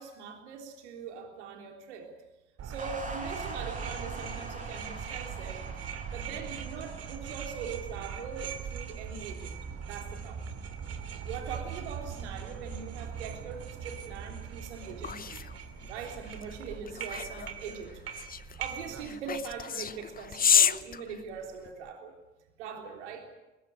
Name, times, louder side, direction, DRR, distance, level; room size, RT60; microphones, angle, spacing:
voice 1, 0.0-2.1 2.6-5.6 6.1-9.6 9.9-10.4 11.2-15.4 15.9-18.0 18.6-22.1 22.6-23.3, right 6 dB, 75° right, 3 dB, 3.5 m, -41 dB
sound 1, 2.6-19.1, right 7 dB, 45° right, 2.9 m, -40 dB
sound 2, 2.8-9.3, right 1 dB, 25° right, 5.5 m, -45 dB
sound 3, 14.4-21.9, left 7 dB, 25° left, 0.8 m, -31 dB
21.0 x 20.0 x 8.8 m, 1.1 s
hypercardioid pair, 65°, 35 cm